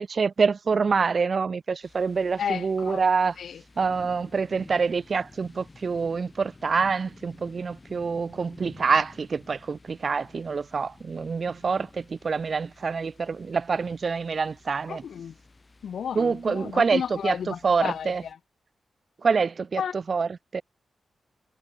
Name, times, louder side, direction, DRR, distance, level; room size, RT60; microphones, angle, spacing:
voice 1, 0.0-3.3 3.8-15.0 16.2-18.2 19.2-19.8 20.1-20.6, right 5 dB, 55° right, 0.4 m, -26 dB
sound 1, 1.8-18.3, left 3 dB, 35° left, 3.8 m, -52 dB
voice 2, 2.4-3.0 3.4-3.6 14.9-15.4 15.8-18.4 19.8-20.0, left 8 dB, 75° left, 0.5 m, -32 dB
supercardioid pair, 45°, 0 cm